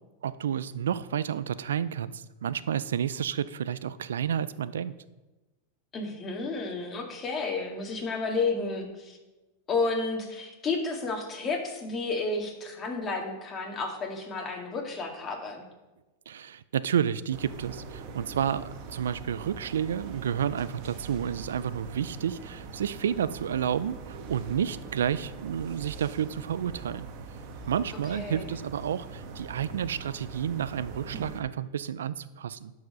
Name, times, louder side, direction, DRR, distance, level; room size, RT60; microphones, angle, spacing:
voice 1, 0.2-4.9 16.3-27.1 27.7-32.7, right 9 dB, 85° right, 16 dB, 0.4 m, -30 dB
voice 2, 5.9-9.2 9.7-15.6 28.1-28.5, left 3 dB, 25° left, 2 dB, 2.0 m, -31 dB
sound 1, 17.3-31.4, right 4 dB, 50° right, 1.3 m, -43 dB
11.5 x 4.8 x 5.5 m, 1.1 s
hypercardioid pair, 115°, 0 cm